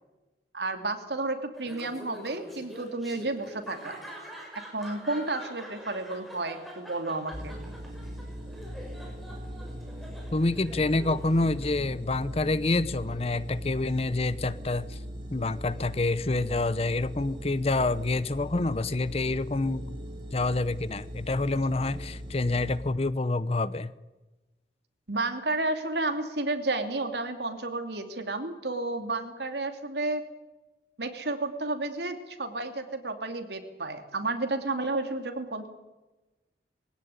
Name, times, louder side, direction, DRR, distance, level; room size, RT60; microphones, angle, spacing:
voice 1, 0.5-4.0 4.7-7.5 25.1-30.2 31.0-35.7, right 2 dB, 70° right, 2.9 m, -31 dB
Laughter, 1.5-11.9, equal, ahead, 6.0 m, -45 dB
sound 1, 7.3-22.8, equal, 30° right, 4.2 m, -40 dB
voice 2, 10.3-15.0 15.3-20.0 20.3-23.9, left 2 dB, 35° left, 0.7 m, -27 dB
22.0 x 16.5 x 9.6 m
head